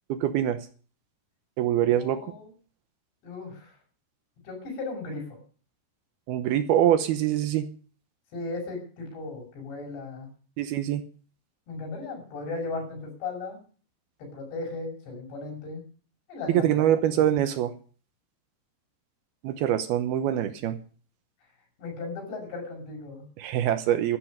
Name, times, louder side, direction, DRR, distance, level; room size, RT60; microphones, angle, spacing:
voice 1, 0.1-0.7 1.6-2.3 6.3-7.7 10.6-11.0 16.5-17.7 19.4-20.8 23.4-24.2, right 11 dB, 70° right, 11 dB, 2.6 m, -24 dB
voice 2, 1.8-2.5 3.2-3.8 4.5-5.2 8.3-10.3 11.7-13.6 14.2-15.8 16.3-16.7 21.8-23.2, left 3 dB, 75° left, 1 dB, 8.9 m, -36 dB
13.5 x 11.5 x 6.6 m, 0.41 s
omnidirectional pair, 5.0 m